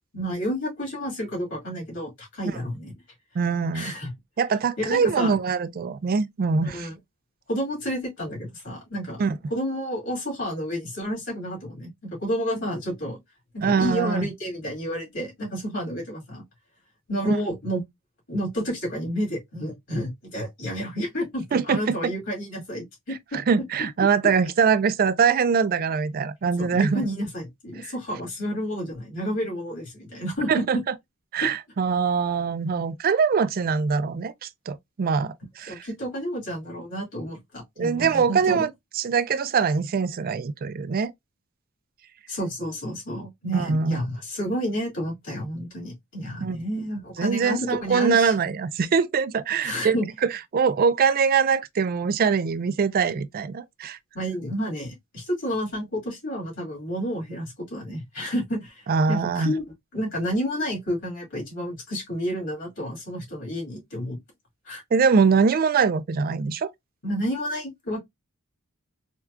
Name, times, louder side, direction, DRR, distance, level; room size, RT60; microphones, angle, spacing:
voice 1, 0.1-2.9 3.7-4.1 4.8-5.3 6.6-6.9 7.5-9.2 9.5-13.2 13.5-16.4 17.1-17.8 18.3-23.4 26.6-30.6 31.4-31.5 35.7-38.7 42.3-48.3 49.6-50.1 54.1-59.6 59.9-64.2 64.7-64.8 67.0-68.0, equal, 60° left, 2.3 m, -30 dB
voice 2, 3.4-3.9 4.4-6.9 9.2-9.4 13.6-14.3 17.2-17.4 21.5-22.0 23.3-27.1 27.8-27.9 30.5-30.8 31.3-35.9 37.8-38.7 39.0-41.1 43.5-44.0 46.4-46.6 47.2-54.0 58.9-59.5 64.9-66.7, right 5 dB, 40° right, 0.4 m, -23 dB
4.4 x 2.3 x 2.3 m
head